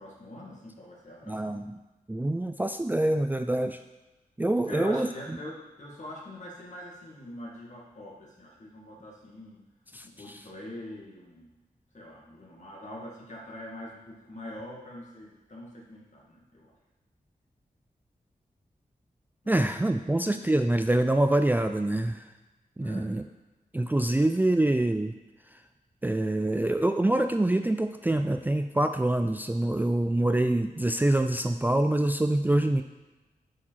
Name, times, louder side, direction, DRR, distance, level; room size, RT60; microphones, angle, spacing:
voice 1, 0.0-1.6 4.7-9.6 10.0-11.5 11.9-16.7 22.8-23.3, left 1 dB, 55° left, -4 dB, 2.2 m, -44 dB
voice 2, 1.3-1.8 2.1-3.8 4.4-5.4 9.9-10.4 19.5-22.2 22.8-23.2 23.7-25.1 26.0-32.8, right 1 dB, 10° right, 7 dB, 0.4 m, -25 dB
6.2 x 4.9 x 5.8 m, 1.1 s
cardioid pair, 60°, 15 cm